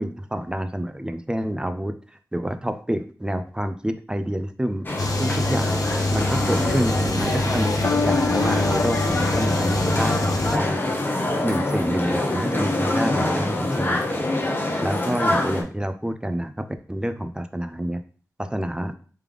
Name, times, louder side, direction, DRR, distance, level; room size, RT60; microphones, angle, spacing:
voice 1, 0.0-1.9 2.3-4.9 5.2-5.8 6.1-11.0 11.4-14.2 14.8-18.0 18.4-18.9, right 1 dB, 15° right, 9 dB, 0.4 m, -28 dB
sound 1, 4.8-15.6, left 1 dB, 35° left, 0.8 m, -25 dB
sound 2, 5.0-10.6, left 2 dB, 80° left, 0.7 m, -25 dB
3.3 x 3.3 x 3.5 m, 0.41 s
wide cardioid pair, 65°, 6 cm